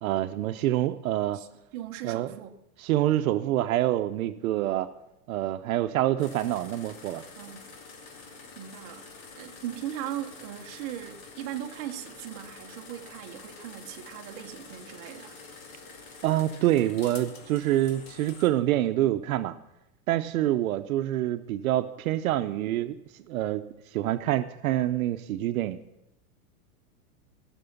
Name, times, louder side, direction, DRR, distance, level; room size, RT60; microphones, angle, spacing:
voice 1, 0.0-1.4 2.0-2.3 2.8-4.9 5.3-7.2 16.2-19.5 20.1-23.0 23.3-23.6 23.9-25.8, right 13 dB, 65° right, 10 dB, 0.7 m, -26 dB
voice 2, 1.3-2.6 7.4-7.8 8.6-15.4, right 11 dB, 30° right, 3 dB, 0.8 m, -39 dB
sound 1, 6.2-18.5, left 4 dB, 65° left, 2.3 m, -47 dB
17.0 x 6.2 x 7.0 m, 0.86 s
supercardioid pair, 165°, 44 cm